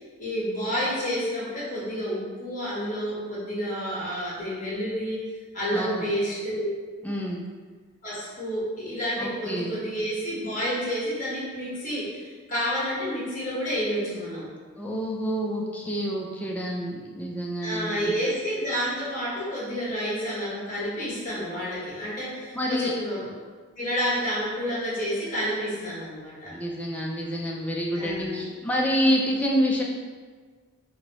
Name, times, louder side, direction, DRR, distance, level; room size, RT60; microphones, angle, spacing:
voice 1, 0.2-5.2 5.5-6.7 8.0-14.5 17.6-23.3 23.8-26.5 27.9-28.5, equal, 35° left, -8 dB, 1.2 m, -29 dB
voice 2, 7.0-7.4 9.2-9.7 14.8-18.1 22.5-22.9 26.5-29.8, equal, 5° left, -2 dB, 0.3 m, -27 dB
2.9 x 2.6 x 3.0 m, 1.5 s
head